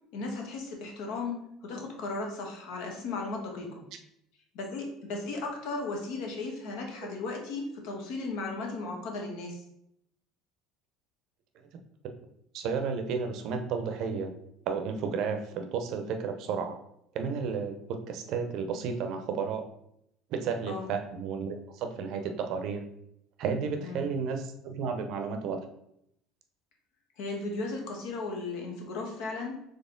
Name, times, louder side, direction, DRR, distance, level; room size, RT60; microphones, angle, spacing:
voice 1, 0.1-3.8 4.5-9.6 20.7-20.9 23.8-24.1 27.2-29.5, left 3 dB, 70° left, 1 dB, 1.1 m, -36 dB
voice 2, 12.5-14.3 14.7-16.8 17.1-19.7 20.3-22.8 23.4-25.6, right 5 dB, 55° right, 6 dB, 0.6 m, -32 dB
4.2 x 3.2 x 3.7 m, 0.76 s
cardioid pair, 145°, 0 cm